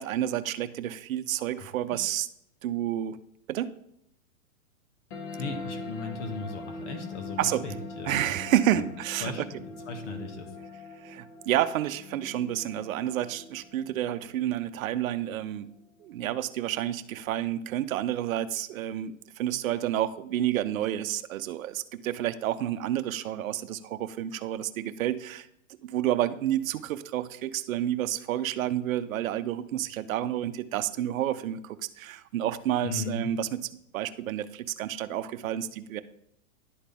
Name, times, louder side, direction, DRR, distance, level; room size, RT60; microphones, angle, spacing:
voice 1, 0.0-2.3 2.6-3.2 3.5-3.7 7.4-7.6 8.0-9.3 11.0-15.7 16.0-25.5 25.8-33.6 33.9-36.0, right 12 dB, 75° right, 11 dB, 0.6 m, -30 dB
voice 2, 1.6-2.0 5.4-8.8 9.2-10.6 32.8-33.4, left 3 dB, 60° left, 4 dB, 1.6 m, -37 dB
sound 1, 5.1-16.1, left 3 dB, 15° left, 0.3 m, -43 dB
11.0 x 4.0 x 3.5 m, 0.74 s
hypercardioid pair, 140°, 41 cm